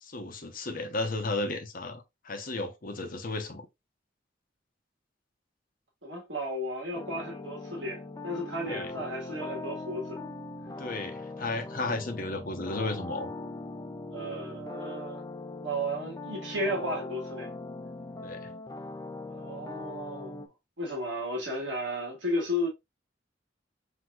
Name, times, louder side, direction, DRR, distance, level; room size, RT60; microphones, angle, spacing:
voice 1, 0.0-3.7 8.7-8.9 10.8-13.3 18.2-18.4, left 2 dB, 50° left, 0.9 m, -34 dB
voice 2, 6.0-10.2 14.1-15.2 15.6-17.5 19.3-20.5 20.8-22.7, equal, 70° right, 1.7 m, -34 dB
sound 1, 6.9-20.5, left 2 dB, 20° left, 0.4 m, -40 dB
6.1 x 2.9 x 2.4 m
head